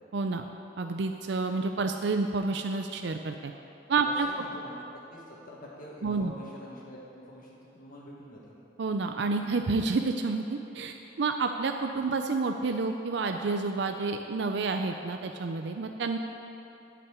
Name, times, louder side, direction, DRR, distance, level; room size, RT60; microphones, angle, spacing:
voice 1, 0.1-0.5 0.8-3.5 3.9-4.3 6.0-6.3 8.8-16.2, right 4 dB, 65° right, 5 dB, 0.5 m, -29 dB
voice 2, 4.0-8.5, equal, 45° left, -5 dB, 1.9 m, -46 dB
11.5 x 5.9 x 8.7 m, 2.9 s
head